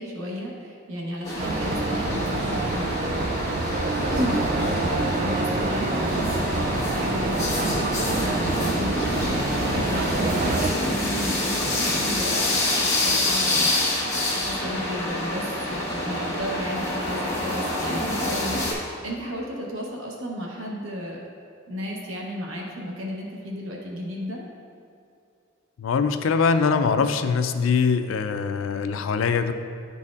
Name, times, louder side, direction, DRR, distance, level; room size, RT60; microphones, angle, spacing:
voice 1, 0.0-3.6 4.2-21.2 21.7-24.4, equal, 90° right, -2 dB, 1.0 m, -34 dB
sound 1, 1.2-18.7, left 1 dB, 15° left, 1.2 m, -27 dB
sound 2, 1.4-10.7, right 2 dB, 40° right, 0.4 m, -27 dB
voice 2, 25.8-29.5, left 5 dB, 70° left, 9 dB, 0.4 m, -22 dB
10.5 x 4.1 x 2.4 m, 2.5 s
head